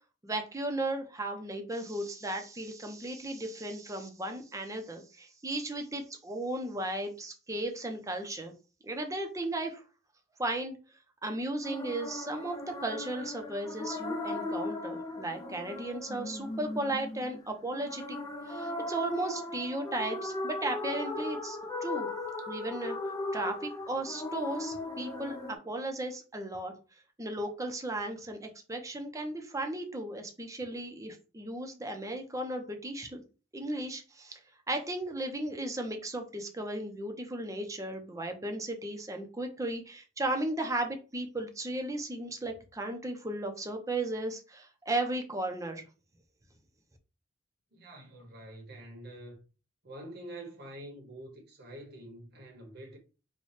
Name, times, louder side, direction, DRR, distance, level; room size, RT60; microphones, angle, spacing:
voice 1, 0.2-8.5 8.8-9.8 10.4-10.8 11.2-18.2 18.5-22.1 22.5-23.0 23.3-25.4 25.6-26.7 27.2-33.2 33.5-34.4 34.7-45.9, right 1 dB, 15° right, 0.6 m, -35 dB
sound 1, 11.6-25.6, left 2 dB, 20° left, 0.7 m, -38 dB
voice 2, 47.7-49.4 49.8-53.0, right 1 dB, 55° right, 1.0 m, -46 dB
4.2 x 2.2 x 3.2 m
head